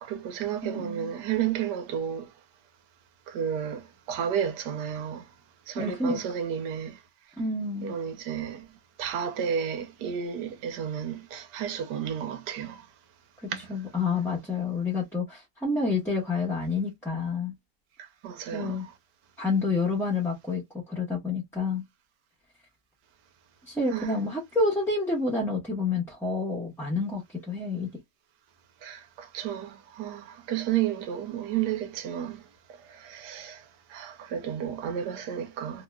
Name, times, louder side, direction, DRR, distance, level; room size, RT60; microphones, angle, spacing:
voice 1, 0.0-2.3 3.3-5.3 5.7-7.0 7.8-8.7 9.0-12.9 13.5-13.7 18.0-18.9 23.9-24.1 28.8-32.4 32.8-33.6 33.9-35.8, right 9 dB, 80° right, 1.3 m, -32 dB
voice 2, 0.6-1.1 5.7-6.2 7.4-8.0 13.4-17.5 18.5-18.9 19.4-21.8 23.7-27.2 27.5-27.9, left 3 dB, ahead, 0.9 m, -29 dB
2.9 x 2.9 x 2.2 m
omnidirectional pair, 1.7 m